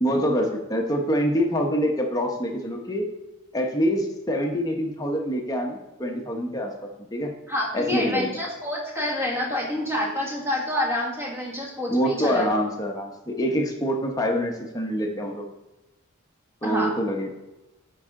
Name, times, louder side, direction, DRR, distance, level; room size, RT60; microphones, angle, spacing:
voice 1, 0.0-3.1 3.5-7.3 7.7-8.4 11.9-15.4 16.6-17.3, equal, 15° left, 1 dB, 0.9 m, -25 dB
voice 2, 7.5-12.4 16.6-16.9, left 1 dB, 10° right, -3 dB, 1.5 m, -27 dB
9.6 x 4.8 x 3.7 m, 1.0 s
head